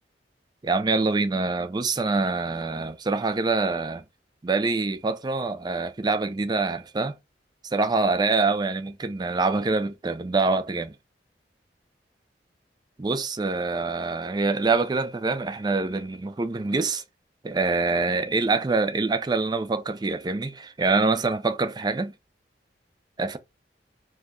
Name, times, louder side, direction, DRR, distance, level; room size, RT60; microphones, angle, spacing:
voice 1, 0.6-4.0 4.4-7.2 7.6-10.9 13.0-17.0 17.4-22.1 23.2-23.4, right 3 dB, 25° right, 0.4 m, -25 dB
2.7 x 2.2 x 3.6 m
head